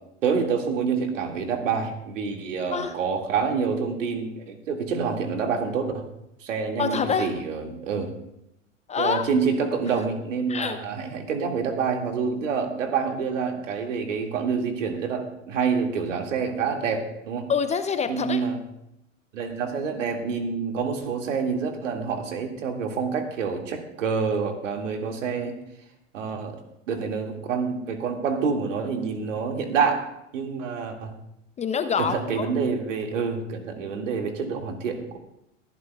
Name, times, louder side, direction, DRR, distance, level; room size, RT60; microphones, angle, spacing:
voice 1, 0.2-6.0 6.4-8.1 9.0-17.5 18.1-18.6 19.3-25.6 26.1-26.6 26.9-31.1 32.0-35.2, right 5 dB, 70° right, 3 dB, 2.2 m, -27 dB
voice 2, 6.8-7.3 8.9-9.3 10.5-10.8 17.5-18.4 31.6-32.5, left 6 dB, 15° left, 9 dB, 0.6 m, -26 dB
23.5 x 11.0 x 2.3 m, 0.81 s
hypercardioid pair, 100°, 39 cm